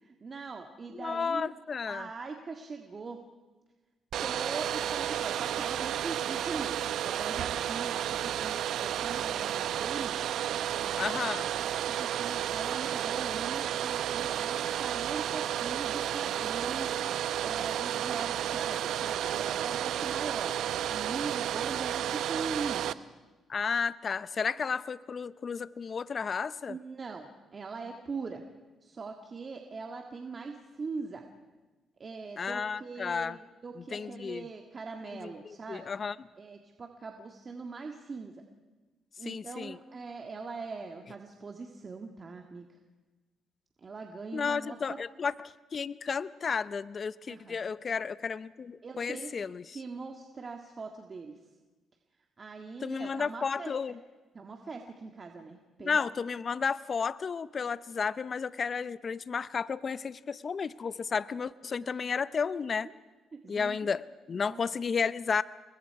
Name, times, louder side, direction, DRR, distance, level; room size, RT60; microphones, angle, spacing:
voice 1, 0.0-1.5 1.9-3.2 4.2-10.2 10.8-11.0 11.5-16.9 17.4-20.6 20.9-23.0 26.7-27.3 27.5-28.4 28.8-31.2 32.0-35.9 36.4-38.4 39.2-42.7 43.8-45.0 47.3-47.6 48.8-49.3 49.7-51.4 52.4-53.7 54.3-56.0 61.8-61.9 63.4-63.9 64.5-64.6, right 4 dB, 40° right, 4 dB, 1.9 m, -41 dB
voice 2, 0.9-2.1 11.0-11.5 23.5-26.8 32.4-33.4 33.8-34.5 35.1-36.2 39.2-39.8 44.3-49.8 52.8-54.0 55.8-62.9 63.5-65.4, left 5 dB, 45° left, 17 dB, 0.6 m, -33 dB
Domestic sounds home sounds, 4.1-22.9, right 11 dB, 75° right, 0.7 m, -32 dB
29.0 x 22.0 x 4.8 m, 1.3 s
cardioid pair, 90°, 0 cm